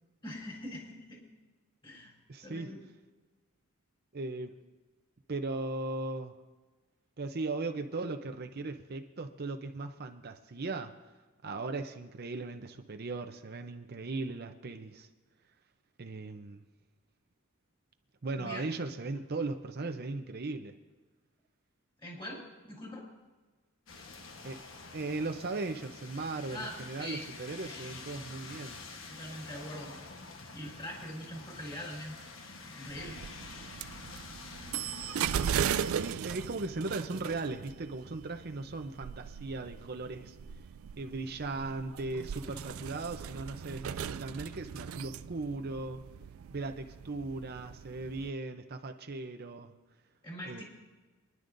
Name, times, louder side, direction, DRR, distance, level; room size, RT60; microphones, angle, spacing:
voice 1, 0.2-1.2 1.8-2.1 2.4-2.8 18.3-18.6 22.0-23.1 26.5-27.3 27.6-27.9 29.1-29.9 30.5-32.2 32.7-33.2 50.2-50.6, equal, 25° left, -3 dB, 4.2 m, -43 dB
voice 2, 2.3-2.7 4.1-4.5 5.3-6.3 7.2-10.9 11.4-15.1 16.0-16.6 18.2-20.7 24.4-24.6 24.9-28.8 35.9-40.4 41.0-46.0 46.5-49.7 50.5-50.6, right 3 dB, 50° right, 6 dB, 0.7 m, -38 dB
sound 1, 23.9-36.2, left 3 dB, 65° left, 1.2 m, -47 dB
sound 2, 32.9-48.3, right 8 dB, 80° right, 0.4 m, -38 dB
26.0 x 11.0 x 2.6 m, 1.3 s
head